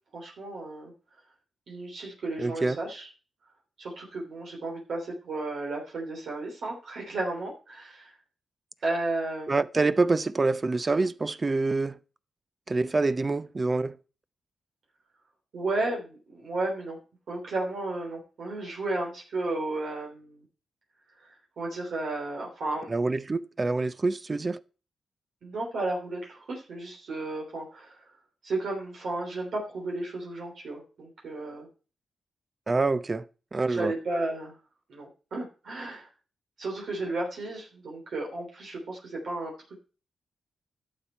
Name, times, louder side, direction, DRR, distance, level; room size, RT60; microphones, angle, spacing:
voice 1, 0.1-0.9 1.7-3.1 3.8-8.1 8.8-9.5 15.5-17.0 17.3-20.4 21.6-22.9 25.4-28.0 28.4-31.7 33.7-34.5 34.9-36.1 36.6-39.5, right 2 dB, 75° right, 3.1 m, -33 dB
voice 2, 2.4-2.8 9.5-12.0 12.7-14.0 22.9-24.6 32.7-33.2 33.5-33.9, right 3 dB, 35° right, 0.6 m, -26 dB
11.5 x 7.2 x 4.4 m
cardioid pair, 75°, 0 cm